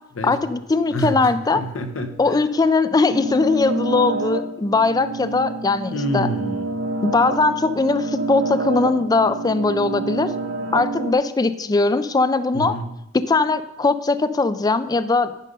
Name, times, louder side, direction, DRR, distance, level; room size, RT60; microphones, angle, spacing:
voice 1, 0.2-1.6 2.2-6.3 7.0-10.3 10.7-12.7 13.1-15.3, left 3 dB, 20° left, 13 dB, 0.3 m, -20 dB
voice 2, 0.9-2.4 5.9-6.7 12.5-12.9, equal, 85° left, 6 dB, 1.0 m, -28 dB
sound 1, 3.1-11.1, right 3 dB, 80° right, 0.7 m, -28 dB
10.0 x 5.1 x 5.4 m, 0.89 s
head